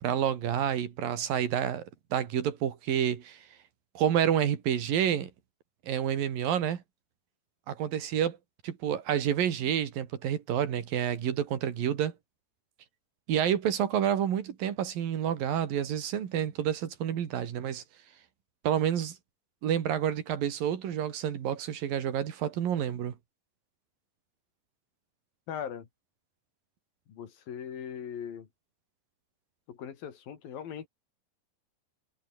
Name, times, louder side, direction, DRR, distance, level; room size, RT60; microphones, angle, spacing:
voice 1, 0.0-3.4 4.0-5.3 5.9-6.8 7.7-8.4 8.6-12.1 13.3-17.8 18.6-19.2 19.6-23.2, right 9 dB, 80° right, 4.0 m, -29 dB
voice 2, 25.5-25.9 27.1-28.5 29.7-30.9, left 8 dB, 85° left, 4.5 m, -39 dB
omnidirectional pair, 4.0 m